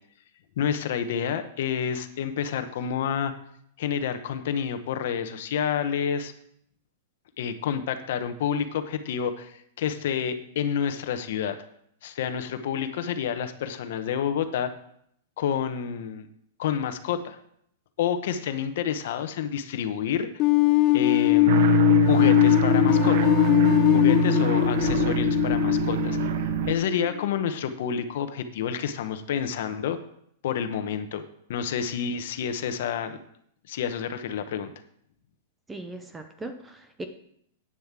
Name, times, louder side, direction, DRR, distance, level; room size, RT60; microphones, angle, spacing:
voice 1, 0.6-3.3 3.8-6.3 7.4-11.6 12.0-14.7 15.4-16.3 16.6-17.4 18.0-20.3 20.9-23.3 23.9-26.2 26.7-30.0 30.4-31.2 31.5-33.2 33.7-34.7, left 8 dB, 55° left, 9 dB, 1.2 m, -29 dB
sound 1, 20.4-27.3, left 17 dB, 25° left, 0.5 m, -21 dB
sound 2, 21.5-26.7, right 8 dB, 50° right, 0.8 m, -25 dB
voice 2, 35.7-37.0, right 2 dB, 10° right, 7 dB, 0.7 m, -39 dB
9.2 x 7.3 x 7.5 m, 0.69 s
supercardioid pair, 170°, 0 cm